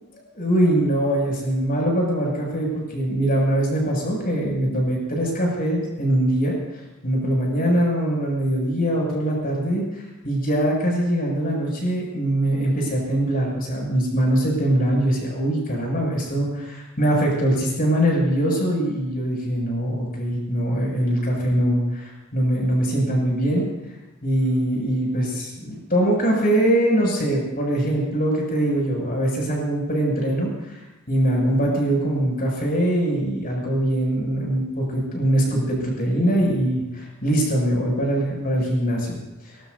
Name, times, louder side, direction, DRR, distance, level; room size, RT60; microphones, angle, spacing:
voice 1, 0.1-6.6 7.0-23.7 24.2-30.8 31.1-39.1, right 1 dB, 45° left, -2 dB, 7.1 m, -22 dB
24.0 x 20.5 x 2.8 m, 1.0 s
head